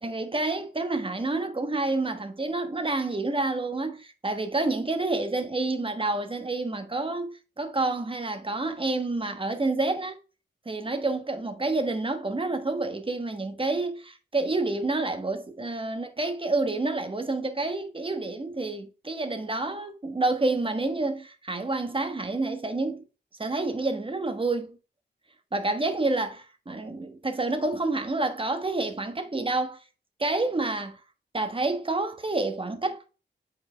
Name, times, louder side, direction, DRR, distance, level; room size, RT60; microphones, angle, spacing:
voice 1, 0.0-10.2 10.6-23.0 23.4-24.8 25.5-29.8 30.2-31.0 31.3-33.1, right 2 dB, 30° right, 1.2 m, -28 dB
8.1 x 4.5 x 3.3 m
wide cardioid pair, 75°, 19 cm